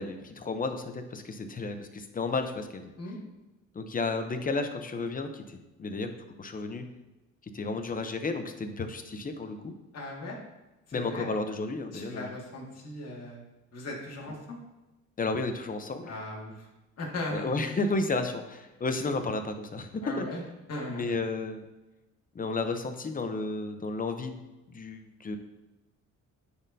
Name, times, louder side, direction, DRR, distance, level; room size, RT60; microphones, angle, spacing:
voice 1, 0.0-2.9 3.7-6.1 6.4-6.9 7.5-9.7 10.9-12.3 15.2-16.1 17.3-20.3 20.9-21.6 22.3-24.4 24.7-25.4, left 3 dB, 30° left, 7 dB, 0.7 m, -32 dB
voice 2, 9.9-10.4 10.9-11.3 11.9-13.4 13.7-14.6 16.1-16.7 17.0-17.7 20.0-20.4 20.7-21.1, left 2 dB, 55° left, -2 dB, 2.0 m, -38 dB
9.6 x 4.3 x 2.7 m, 1.0 s
cardioid pair, 90°, 30 cm